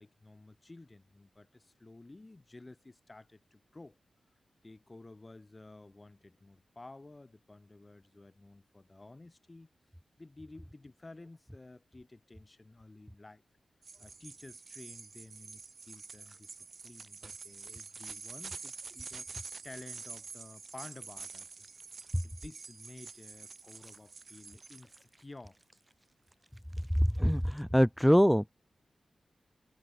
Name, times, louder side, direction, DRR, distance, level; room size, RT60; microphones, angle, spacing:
voice 1, 0.0-4.0 4.6-9.7 10.2-13.4 14.0-16.5 16.8-21.7 22.2-25.6, left 2 dB, 25° left, 2.2 m, -53 dB
sound 1, 13.8-25.0, right 4 dB, 55° right, 1.3 m, -47 dB
sound 2, 15.6-18.9 20.5-27.6, right 1 dB, 15° right, 6.5 m, -66 dB
voice 2, 27.0-28.4, equal, ahead, 0.3 m, -24 dB
wide cardioid pair, 90°, 0 cm